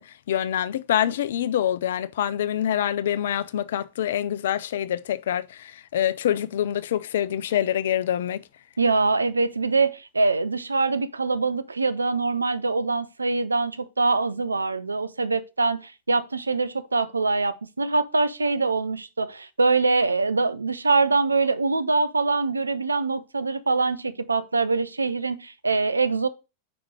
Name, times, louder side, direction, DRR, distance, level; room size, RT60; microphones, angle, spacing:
voice 1, 0.0-8.4, left 10 dB, 60° left, 0.4 m, -26 dB
voice 2, 8.8-26.3, right 3 dB, 80° right, 0.5 m, -24 dB
5.0 x 4.9 x 4.5 m
figure-of-eight pair, 90°, 0 cm